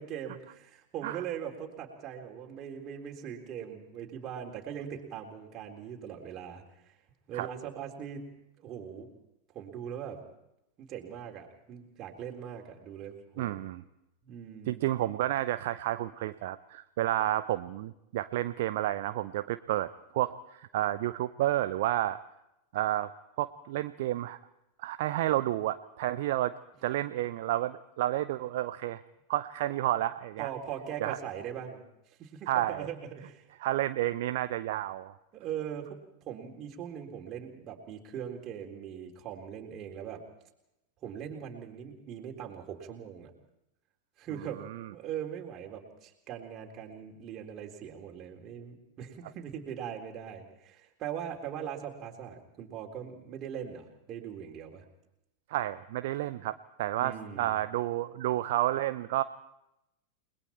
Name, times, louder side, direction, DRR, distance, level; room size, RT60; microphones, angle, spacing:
voice 1, 0.0-6.9 7.3-8.2 8.6-9.1 9.5-10.2 10.8-13.6 14.2-14.8 30.4-31.8 32.2-33.4 35.3-36.0 36.3-40.2 41.0-43.3 44.2-54.8 57.0-57.6, right 9 dB, 35° right, 2 dB, 3.8 m, -41 dB
voice 2, 13.4-13.8 14.7-22.2 22.7-23.1 23.4-24.4 24.8-26.5 26.8-29.0 29.3-30.5 31.0-31.2 32.5-32.9 33.6-35.2 44.6-44.9 55.5-59.2, right 14 dB, 55° right, 12 dB, 0.7 m, -31 dB
30.0 x 21.0 x 4.5 m, 0.86 s
figure-of-eight pair, 90°, 0 cm